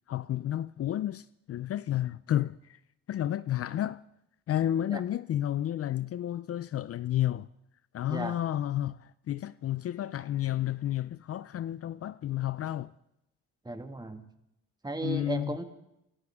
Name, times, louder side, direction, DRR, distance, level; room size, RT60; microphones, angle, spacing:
voice 1, 0.1-2.8 3.1-4.0 4.5-7.5 7.9-12.9 15.0-15.6, left 12 dB, 50° left, 0.5 m, -31 dB
voice 2, 13.7-14.3 14.8-15.6, right 2 dB, 15° right, 2.0 m, -35 dB
27.5 x 14.5 x 3.6 m
cardioid pair, 90°, 30 cm